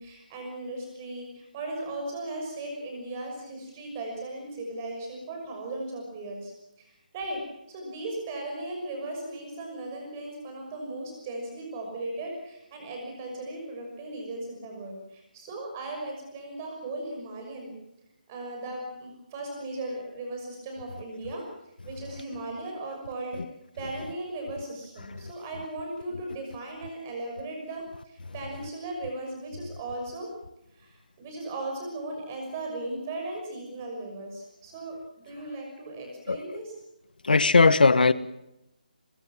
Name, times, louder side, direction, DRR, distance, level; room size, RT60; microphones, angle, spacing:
voice 1, 0.0-6.5 6.8-7.4 7.7-17.7 18.3-21.5 21.8-23.4 23.8-30.3 30.7-35.0 35.2-36.7, right 2 dB, 15° right, 2 dB, 6.1 m, -37 dB
voice 2, 37.2-38.1, left 4 dB, 80° left, 15 dB, 1.3 m, -18 dB
23.5 x 22.5 x 7.5 m, 0.88 s
hypercardioid pair, 175°, 5 cm